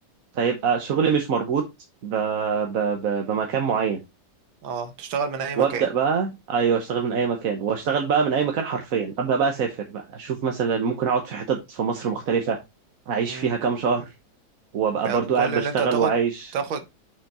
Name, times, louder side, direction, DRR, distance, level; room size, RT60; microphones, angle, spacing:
voice 1, 0.3-1.6 2.0-4.0 5.6-12.6 13.1-14.1 14.7-16.5, right 6 dB, 50° right, 1.2 m, -24 dB
voice 2, 4.6-5.9 10.8-11.0 13.3-13.5 15.0-16.1 16.5-16.9, right 5 dB, 80° right, 1.8 m, -29 dB
5.9 x 5.7 x 4.2 m
omnidirectional pair, 2.1 m